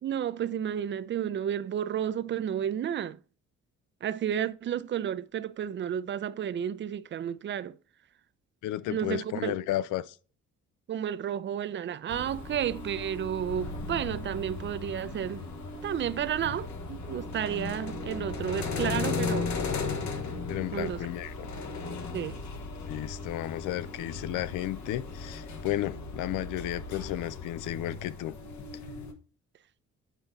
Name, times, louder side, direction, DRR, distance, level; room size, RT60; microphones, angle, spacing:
voice 1, 0.0-3.2 4.0-7.8 8.9-9.5 10.9-15.5 15.8-19.5 20.7-21.0 22.1-22.4, right 9 dB, 40° right, 0.4 m, -32 dB
voice 2, 8.6-10.2 20.5-21.5 22.8-28.3, left 13 dB, 85° left, 0.5 m, -33 dB
sound 1, 12.1-29.1, left 4 dB, 70° left, 1.1 m, -36 dB
9.0 x 3.9 x 3.9 m
cardioid pair, 90°, 30 cm